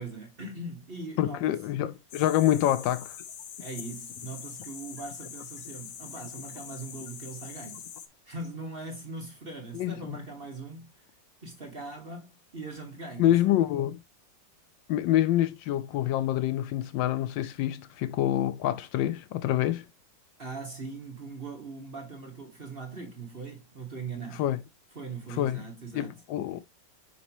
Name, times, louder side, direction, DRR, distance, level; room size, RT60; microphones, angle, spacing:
voice 1, 0.0-1.6 3.6-7.8 8.3-11.0 11.4-13.5 20.4-24.4 24.9-26.1, right 3 dB, 35° right, 1.6 m, -40 dB
voice 2, 1.2-3.2 9.7-10.2 13.2-14.0 14.9-19.8 24.4-24.6 25.4-25.6 25.9-26.6, left 13 dB, 85° left, 1.3 m, -26 dB
sound 1, 2.1-8.1, left 8 dB, 60° left, 1.0 m, -43 dB
6.1 x 5.3 x 2.9 m
omnidirectional pair, 2.0 m